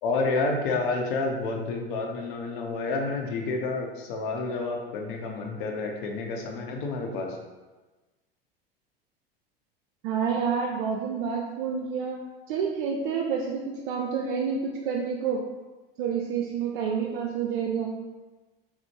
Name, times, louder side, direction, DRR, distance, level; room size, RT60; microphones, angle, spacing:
voice 1, 0.0-7.4, left 3 dB, 60° left, 1 dB, 0.7 m, -29 dB
voice 2, 10.0-12.2 12.5-15.4 16.0-17.9, right 6 dB, 60° right, 0 dB, 0.4 m, -28 dB
4.1 x 2.0 x 3.0 m, 1.2 s
figure-of-eight pair, 80°, 29 cm